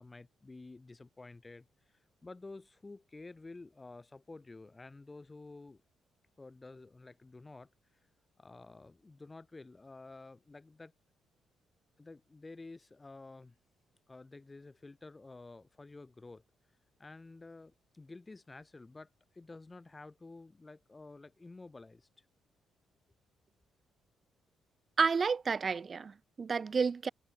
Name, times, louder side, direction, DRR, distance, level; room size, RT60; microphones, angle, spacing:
voice 1, 0.0-5.8 6.4-7.7 8.4-10.9 12.0-13.6 14.1-16.4 17.0-22.3, left 3 dB, 20° left, 1.9 m, -51 dB
voice 2, 25.0-27.1, right 5 dB, 40° right, 0.4 m, -30 dB
cardioid pair, 90°, 0 cm